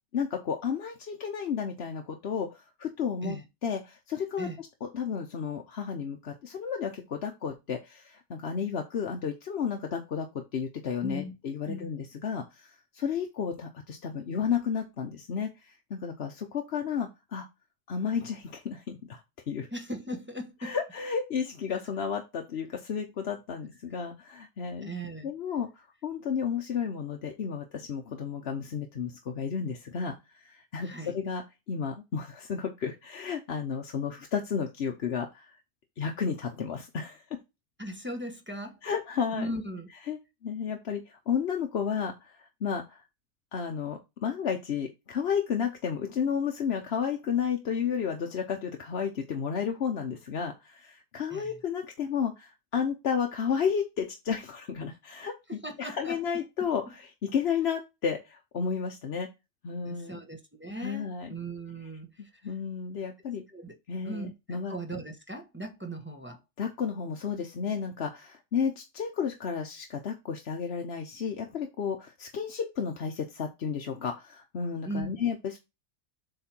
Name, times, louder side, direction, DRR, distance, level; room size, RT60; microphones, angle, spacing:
voice 1, 0.1-3.4 3.6-10.3 10.5-17.5 17.9-19.2 19.5-19.7 20.6-24.9 25.2-35.6 36.0-37.2 38.8-39.5 40.1-43.0 43.5-59.3 59.6-60.2 60.7-61.3 62.4-63.4 63.9-64.8 66.6-75.6, left 7 dB, 55° left, 1.0 m, -32 dB
voice 2, 11.0-11.4 11.7-11.9 19.7-20.8 21.7-21.8 24.8-25.3 30.8-31.1 37.8-38.8 39.4-39.9 51.3-51.5 55.5-56.7 59.8-62.1 62.4-62.5 63.5-63.8 64.0-66.4 74.8-75.1, right 1 dB, 10° right, 1.0 m, -38 dB
7.7 x 3.4 x 4.4 m
omnidirectional pair, 1.3 m